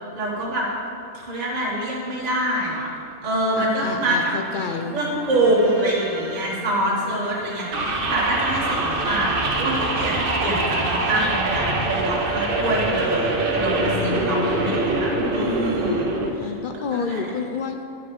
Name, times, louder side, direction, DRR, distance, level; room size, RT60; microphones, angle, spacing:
voice 1, 0.1-0.7 1.1-2.9 3.2-4.3 4.9-16.5 16.9-17.2, right 1 dB, 30° right, -5 dB, 1.5 m, -25 dB
voice 2, 3.6-5.0 13.8-15.1 16.4-17.8, left 5 dB, 75° left, 5 dB, 0.4 m, -30 dB
sound 1, 4.4-11.9, right 1 dB, 75° right, 1.4 m, -37 dB
sound 2, 7.7-16.3, right 2 dB, 50° right, 0.9 m, -24 dB
9.5 x 6.6 x 5.4 m, 2.6 s
omnidirectional pair, 1.4 m